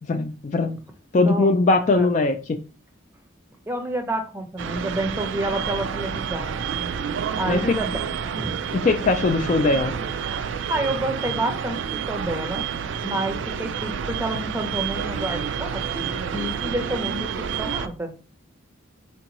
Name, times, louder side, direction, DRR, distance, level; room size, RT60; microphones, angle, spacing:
voice 1, 0.1-0.8 1.1-2.6 7.5-7.8 8.7-9.9, left 3 dB, 35° left, 0.3 m, -20 dB
voice 2, 1.1-1.5 1.9-2.1 3.7-6.6 7.4-8.5 10.7-16.1 16.3-18.1, right 1 dB, 10° right, 0.6 m, -29 dB
sound 1, 4.6-17.9, right 7 dB, 65° right, 0.3 m, -29 dB
4.5 x 2.6 x 2.9 m
head